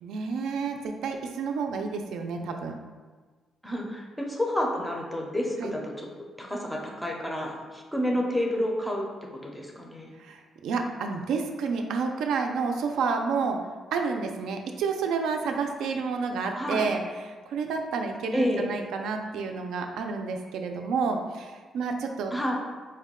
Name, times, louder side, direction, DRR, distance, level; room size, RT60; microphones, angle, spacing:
voice 1, 0.0-2.8 5.6-5.7 10.2-13.6 13.9-22.3, right 5 dB, 85° right, 4 dB, 0.4 m, -30 dB
voice 2, 3.6-6.1 6.4-9.0 9.4-10.1 16.6-16.8 18.3-18.7 22.3-22.5, equal, 5° left, -1 dB, 0.4 m, -29 dB
4.6 x 2.2 x 3.6 m, 1.4 s
cardioid pair, 180°, 0 cm